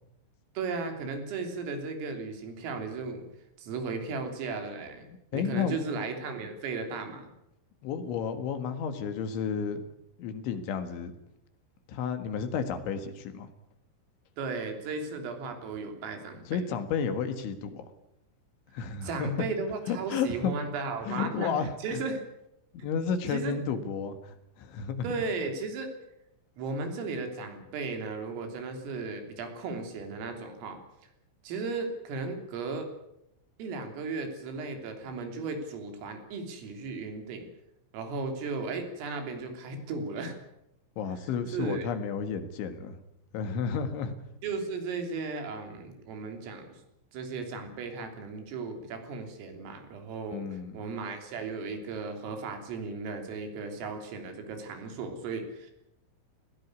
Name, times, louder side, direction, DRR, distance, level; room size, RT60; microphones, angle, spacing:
voice 1, 0.6-3.2 3.6-7.3 14.4-16.6 19.0-21.5 21.8-22.2 23.3-23.6 25.0-25.9 26.6-30.8 31.4-32.9 33.6-37.5 37.9-40.4 41.5-41.9 44.4-46.7 47.1-55.7, right 4 dB, 80° right, 5 dB, 5.8 m, -35 dB
voice 2, 5.3-5.8 7.8-9.9 10.2-11.1 11.9-13.5 16.5-17.8 18.7-19.5 19.9-20.5 21.1-22.0 22.8-25.2 41.0-43.0 43.3-44.2 50.3-50.9, left 6 dB, 70° left, 9 dB, 3.9 m, -32 dB
20.0 x 17.0 x 9.6 m, 0.83 s
omnidirectional pair, 5.8 m